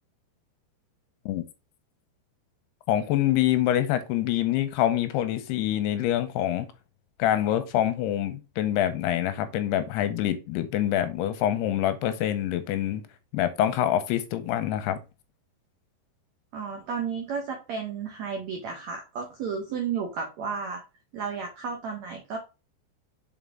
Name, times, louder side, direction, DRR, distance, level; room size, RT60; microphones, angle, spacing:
voice 1, 2.9-6.7 7.2-13.0 13.3-15.0, left 12 dB, 85° left, 2.6 m, -25 dB
voice 2, 16.5-20.8 21.1-22.4, right 6 dB, 85° right, 1.5 m, -33 dB
5.6 x 5.1 x 3.5 m
omnidirectional pair, 4.9 m